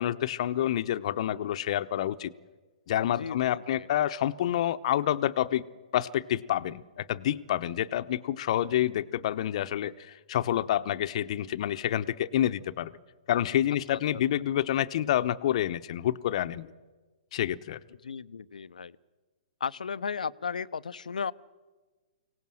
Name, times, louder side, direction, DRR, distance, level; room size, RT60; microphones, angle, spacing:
voice 1, 0.0-2.3 2.9-5.7 5.9-12.9 13.3-16.7 17.3-17.8, left 11 dB, 55° left, 12 dB, 0.9 m, -28 dB
voice 2, 3.2-4.1 13.9-14.0 18.0-19.0 19.6-21.3, left 6 dB, 85° left, 16 dB, 0.7 m, -35 dB
24.0 x 18.0 x 7.7 m, 1.3 s
hypercardioid pair, 135°, 4 cm